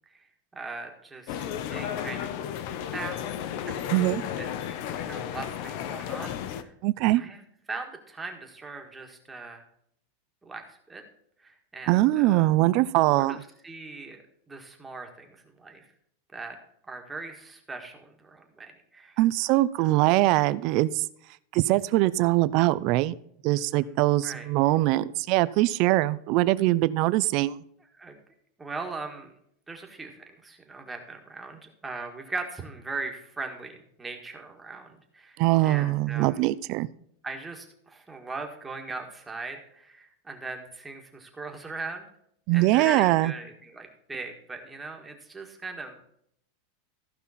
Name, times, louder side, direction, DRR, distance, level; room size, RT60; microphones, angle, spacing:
voice 1, 0.5-2.5 2.9-3.7 4.4-6.7 7.1-7.4 7.7-9.6 10.4-11.0 11.4-12.5 13.2-13.4 13.6-15.9 16.3-16.6 16.9-19.2 19.8-20.0 23.7-24.5 27.9-28.2 28.6-29.3 29.7-36.4 37.2-42.1 42.5-46.0, right 3 dB, 10° right, 3 dB, 1.5 m, -40 dB
sound 1, 1.3-6.6, left 9 dB, 50° left, 0.8 m, -33 dB
voice 2, 3.9-4.2 6.8-7.2 11.9-13.4 19.2-21.0 21.5-23.1 23.4-27.6 35.4-36.9 42.5-43.3, right 17 dB, 45° right, 17 dB, 0.5 m, -22 dB
14.5 x 5.6 x 4.1 m, 0.70 s
supercardioid pair, 160°, 0 cm